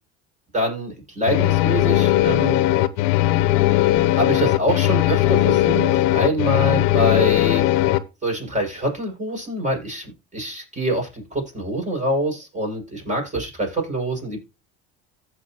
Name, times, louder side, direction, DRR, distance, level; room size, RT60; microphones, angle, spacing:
voice 1, 0.5-2.6 4.1-7.6 8.2-14.4, equal, 20° right, 5.9 m, -25 dB
sound 1, 1.3-8.0, left 15 dB, 70° left, 0.9 m, -18 dB
15.0 x 5.1 x 2.9 m
hypercardioid pair, 75°, 38 cm